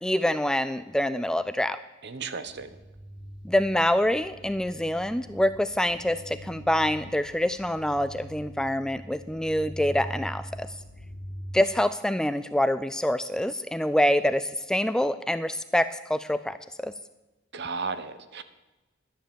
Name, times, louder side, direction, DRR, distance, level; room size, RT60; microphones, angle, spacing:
voice 1, 0.0-1.8 3.4-10.7 11.5-16.9, left 1 dB, 5° left, 13 dB, 0.3 m, -26 dB
voice 2, 2.0-2.7 17.5-18.4, right 4 dB, 60° right, 12 dB, 0.9 m, -34 dB
sound 1, 2.4-11.5, equal, 85° right, 2.0 m, -43 dB
11.5 x 10.5 x 6.9 m, 1.1 s
head